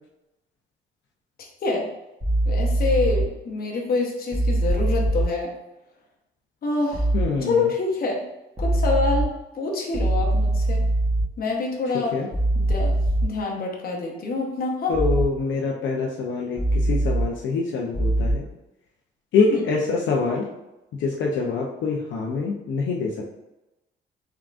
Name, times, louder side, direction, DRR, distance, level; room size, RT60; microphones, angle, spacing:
sound 1, 2.2-3.2 4.3-5.2 6.9-7.2 8.6-9.2 9.9-11.2 12.3-13.2 14.9-15.2 16.6-17.2 17.9-18.3, right 1 dB, 25° right, 1.4 m, -22 dB
voice 1, 2.5-5.5 6.6-7.1 7.4-8.2 8.6-10.8 11.4-12.1 12.5-15.0 19.4-19.6, left 3 dB, 50° left, -1 dB, 0.9 m, -26 dB
voice 2, 7.1-7.7 12.1-12.3 14.9-18.5 19.3-20.5 20.9-23.3, left 4 dB, 70° left, -1 dB, 0.5 m, -25 dB
3.7 x 3.6 x 2.4 m, 0.98 s
cardioid pair, 90°, 20 cm